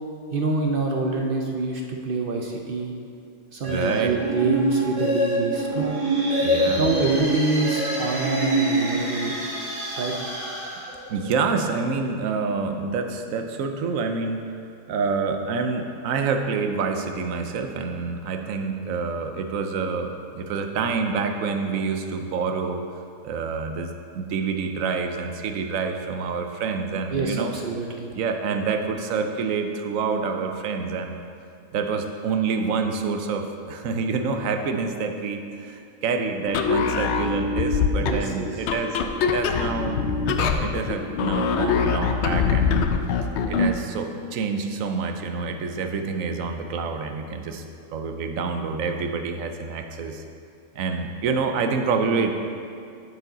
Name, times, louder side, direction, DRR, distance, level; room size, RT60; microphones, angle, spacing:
voice 1, 0.3-2.9 3.5-6.0 6.8-9.4 10.0-10.1 27.1-28.1 38.0-38.5, right 3 dB, 55° right, 1 dB, 0.6 m, -26 dB
sound 1, 3.6-9.5, right 1 dB, 15° right, 1.5 m, -25 dB
voice 2, 3.7-4.2 6.4-6.8 11.1-14.6 14.9-22.9 23.2-27.5 28.2-31.2 31.7-42.8 43.5-47.6 47.9-50.2 50.7-52.3, right 5 dB, 75° right, 5 dB, 1.0 m, -27 dB
sound 2, 5.7-11.7, right 1 dB, 40° right, 1.4 m, -33 dB
sound 3, 36.5-43.8, left 5 dB, 65° left, 0.7 m, -23 dB
11.0 x 4.9 x 3.9 m, 2.4 s
omnidirectional pair, 1.5 m